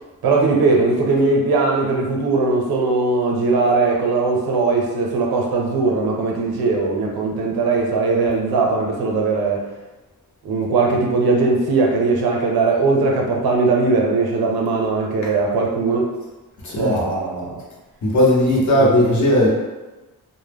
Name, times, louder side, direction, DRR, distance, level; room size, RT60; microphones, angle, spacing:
voice 1, 0.2-9.6 10.4-16.1 16.8-17.6 18.7-18.8, right 3 dB, 80° right, 0 dB, 0.6 m, -19 dB
voice 2, 16.6-17.0 18.0-19.5, left 1 dB, 50° left, -4 dB, 0.8 m, -16 dB
2.1 x 2.0 x 3.3 m, 1.1 s
cardioid pair, 105°, 37 cm